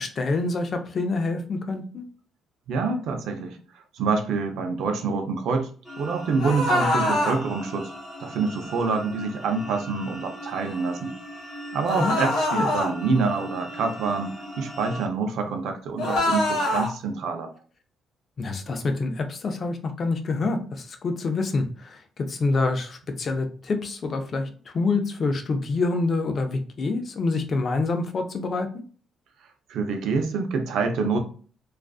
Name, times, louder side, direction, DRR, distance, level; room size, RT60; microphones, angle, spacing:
voice 1, 0.0-2.0 12.0-12.2 12.5-12.7 18.4-28.7, left 3 dB, 40° left, 6 dB, 0.4 m, -27 dB
voice 2, 2.7-5.7 6.0-7.9 8.2-11.1 11.7-17.5 29.7-31.2, right 4 dB, 75° right, 5 dB, 0.5 m, -26 dB
sound 1, 5.8-15.1, equal, 15° left, 1.0 m, -39 dB
sound 2, 6.4-7.4 11.8-12.9 16.0-16.9, left 1 dB, 85° left, 0.9 m, -24 dB
2.4 x 2.4 x 2.3 m, 0.41 s
cardioid pair, 145°, 0 cm